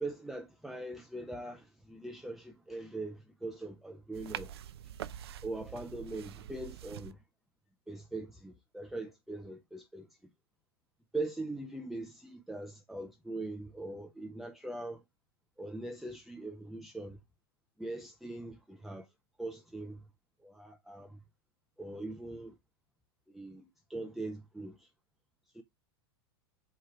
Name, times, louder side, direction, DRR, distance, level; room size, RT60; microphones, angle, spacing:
voice 1, 0.0-4.5 5.4-7.2 7.9-10.1 11.1-15.0 15.6-17.2 17.8-19.1 19.4-20.0 20.4-21.2 21.8-22.5 23.3-24.9 25.5-25.6, right 2 dB, ahead, 0.4 m, -41 dB
sound 1, 4.1-7.1, right 11 dB, 75° right, 0.4 m, -45 dB
4.5 x 2.4 x 4.5 m
hypercardioid pair, 100°, 13 cm